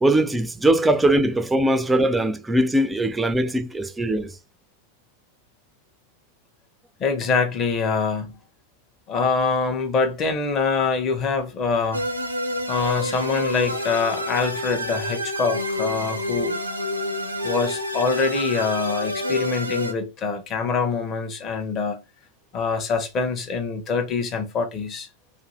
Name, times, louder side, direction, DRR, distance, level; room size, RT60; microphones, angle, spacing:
voice 1, 0.0-4.3, right 1 dB, 10° right, 0.3 m, -21 dB
voice 2, 7.0-8.4 9.1-12.0 12.7-16.6 17.4-22.0 22.5-25.1, left 4 dB, 30° left, 0.7 m, -24 dB
sound 1, 11.9-19.9, left 1 dB, 85° right, 0.5 m, -28 dB
2.6 x 2.4 x 3.0 m
figure-of-eight pair, 90°, 0 cm